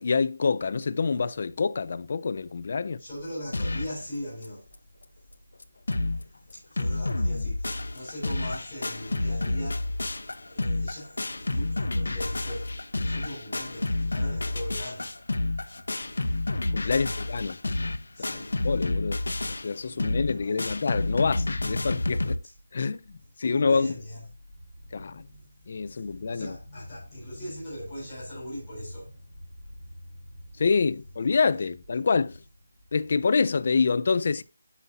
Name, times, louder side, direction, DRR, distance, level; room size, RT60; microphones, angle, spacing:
voice 1, 0.0-3.0 16.7-17.6 18.2-19.2 19.6-22.4 22.7-23.9 24.9-25.2 25.7-26.6 30.6-32.4 32.9-34.4, left 5 dB, 30° left, 0.4 m, -26 dB
voice 2, 3.0-4.7 6.5-9.9 10.5-15.2 16.8-17.2 18.1-18.7 19.8-20.7 22.4-22.5 23.4-24.3 24.8-29.3 29.6-30.4, equal, 5° left, 3.8 m, -40 dB
sound 1, 3.5-4.0 4.4-4.5 4.7-4.8 5.3-5.4 5.6-6.2 6.5-22.4, left 2 dB, 70° left, 0.9 m, -29 dB
9.7 x 7.0 x 2.7 m
figure-of-eight pair, 180°, 0 cm